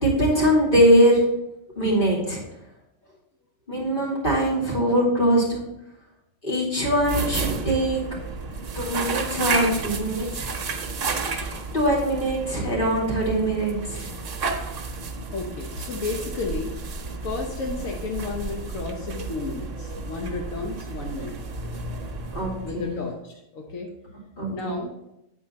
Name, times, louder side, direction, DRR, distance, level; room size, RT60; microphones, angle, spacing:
voice 1, 0.0-1.2 1.8-2.4 3.7-5.6 6.4-8.0 8.7-10.4 11.3-11.4 11.7-14.1 22.3-22.9 24.4-24.7, equal, 40° left, -5 dB, 2.8 m, -22 dB
sound 1, 6.9-23.0, right 4 dB, 70° right, 1.3 m, -32 dB
voice 2, 15.3-16.7 17.2-21.4 22.6-23.9 24.5-24.9, left 3 dB, 85° left, 0 dB, 1.3 m, -32 dB
9.7 x 4.4 x 4.3 m, 0.87 s
omnidirectional pair, 1.3 m